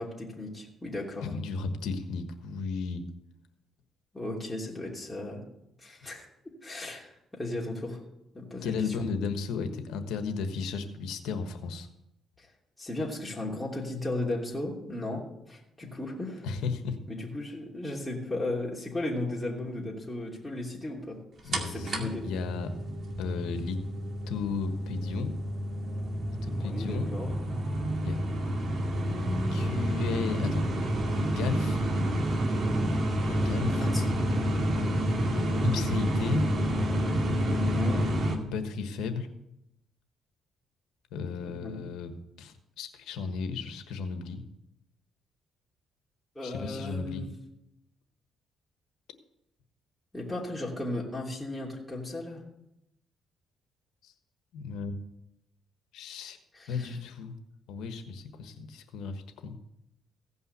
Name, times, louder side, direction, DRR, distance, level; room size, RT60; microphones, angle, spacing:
voice 1, 0.0-1.3 4.1-5.4 5.8-6.3 6.6-8.0 8.3-9.1 12.4-12.5 12.8-15.2 15.5-16.5 17.1-21.2 21.4-22.3 26.6-27.3 33.7-34.0 37.5-38.0 41.4-41.8 46.3-47.3 50.1-52.4 56.5-57.0, left 2 dB, 10° left, -4 dB, 3.1 m, -35 dB
voice 2, 1.2-3.0 8.6-11.9 15.8-15.9 16.4-17.0 21.4-22.7 23.2-23.8 24.3-25.3 26.3-27.2 28.0-28.2 29.5-30.7 31.4-31.8 33.3-34.1 35.3-36.5 38.5-39.3 41.1-44.4 46.4-47.3 54.0-54.1 54.5-54.9 55.9-56.4 56.7-57.3 57.7-59.5, left 5 dB, 90° left, 8 dB, 1.3 m, -34 dB
sound 1, 21.5-38.4, equal, 50° right, 2.1 m, -29 dB
16.0 x 5.6 x 8.2 m, 0.84 s
cardioid pair, 90°, 0 cm